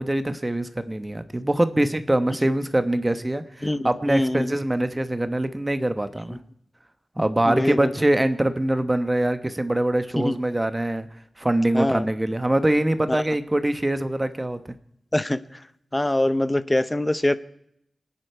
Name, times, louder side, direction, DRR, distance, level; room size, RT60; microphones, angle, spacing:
voice 1, 0.0-6.4 7.2-11.1 11.4-14.7, right 1 dB, 20° right, 10 dB, 1.1 m, -23 dB
voice 2, 3.6-4.5 6.3-6.4 7.4-7.9 10.2-10.4 11.7-12.1 13.1-13.2 15.1-15.6 15.9-17.4, left 1 dB, 20° left, 14 dB, 0.8 m, -24 dB
29.0 x 10.0 x 4.7 m, 0.76 s
wide cardioid pair, 80°, 0 cm